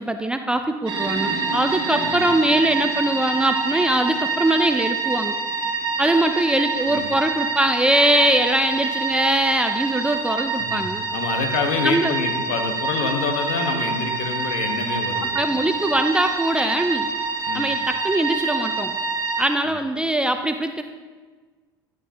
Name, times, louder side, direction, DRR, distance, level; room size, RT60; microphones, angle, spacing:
voice 1, 0.0-5.4 6.0-11.1 11.8-12.1 15.3-17.1 17.5-19.0 19.4-20.8, right 1 dB, 5° right, 7 dB, 0.4 m, -22 dB
sound 1, 0.9-19.4, right 4 dB, 40° right, 2.1 m, -26 dB
voice 2, 10.6-15.6 17.5-17.7 19.6-19.7, left 5 dB, 55° left, 4 dB, 1.3 m, -27 dB
11.0 x 9.0 x 2.8 m, 1.4 s
figure-of-eight pair, 70°, 12 cm